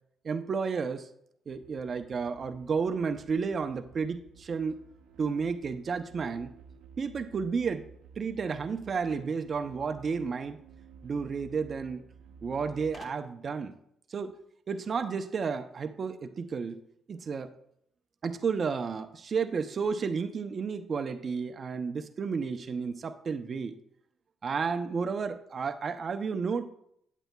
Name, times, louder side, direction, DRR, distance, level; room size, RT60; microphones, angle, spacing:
voice 1, 0.2-1.1 1.5-4.8 5.2-6.5 7.0-7.9 8.2-10.6 11.0-12.0 12.4-13.7 14.1-14.4 14.7-16.8 17.1-17.5 18.2-23.7 24.4-26.7, right 5 dB, 45° right, 9 dB, 0.5 m, -32 dB
sound 1, 1.5-13.0, right 6 dB, 90° right, 0.6 m, -54 dB
sound 2, 9.0-10.4 11.5-11.6 11.9-12.0 12.9-13.6, left 2 dB, 40° left, 1.1 m, -54 dB
9.0 x 8.1 x 2.2 m, 0.73 s
cardioid pair, 90°, 0 cm